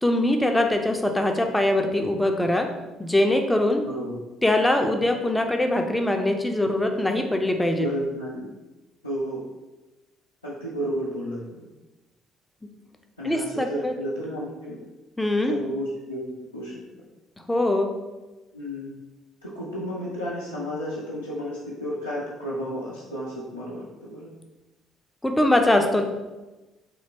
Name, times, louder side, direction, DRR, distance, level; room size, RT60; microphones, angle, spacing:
voice 1, 0.0-2.7 3.0-3.8 4.4-7.9 13.2-13.9 15.2-15.5 17.5-17.9 25.2-26.0, left 1 dB, 10° left, 4 dB, 0.5 m, -22 dB
voice 2, 3.8-4.2 7.7-8.5 9.0-9.4 10.4-11.4 13.2-14.8 15.5-16.7 18.5-18.9 19.4-24.3, equal, 90° left, -9 dB, 0.4 m, -32 dB
3.1 x 2.8 x 2.8 m, 1.1 s
figure-of-eight pair, 50°, 0 cm